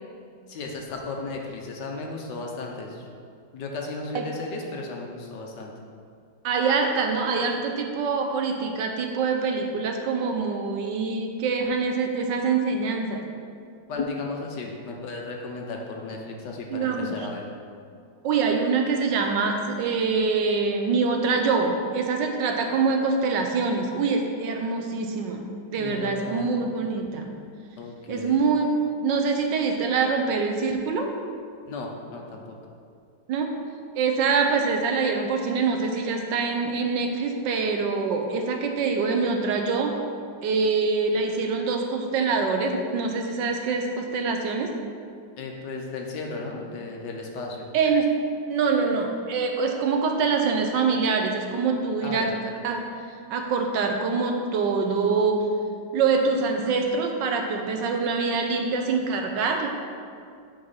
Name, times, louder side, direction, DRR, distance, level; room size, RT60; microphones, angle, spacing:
voice 1, 0.5-3.1 3.5-5.7 13.9-17.5 25.8-26.7 27.8-28.4 31.7-32.6 45.4-47.7 52.0-52.3, left 3 dB, 70° left, 1 dB, 1.5 m, -35 dB
voice 2, 6.4-13.2 16.7-17.3 18.2-25.4 25.7-27.3 28.1-31.1 33.3-33.5 33.9-40.0 40.4-44.7 47.7-48.1 48.5-52.3 52.6-52.8 53.3-55.5 55.9-59.7, right 4 dB, 70° right, 3 dB, 1.4 m, -25 dB
9.1 x 4.2 x 5.6 m, 2.2 s
omnidirectional pair, 2.1 m